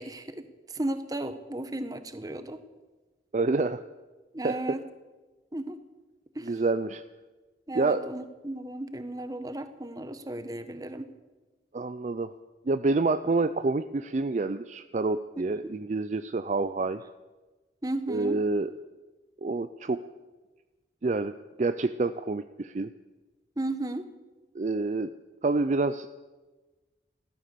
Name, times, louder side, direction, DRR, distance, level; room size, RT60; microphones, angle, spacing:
voice 1, 0.0-2.6 4.3-4.8 5.5-5.8 6.3-6.5 7.7-11.1 15.4-15.5 17.8-18.4 23.6-24.1, right 1 dB, 20° right, 10 dB, 0.9 m, -35 dB
voice 2, 3.3-3.8 4.4-4.8 6.4-7.0 7.7-8.1 11.7-12.3 12.7-17.0 18.1-18.7 19.4-20.0 21.0-21.3 21.6-22.9 24.5-25.1 25.4-26.1, right 3 dB, 40° right, 11 dB, 0.4 m, -27 dB
15.0 x 13.0 x 6.8 m, 1.2 s
head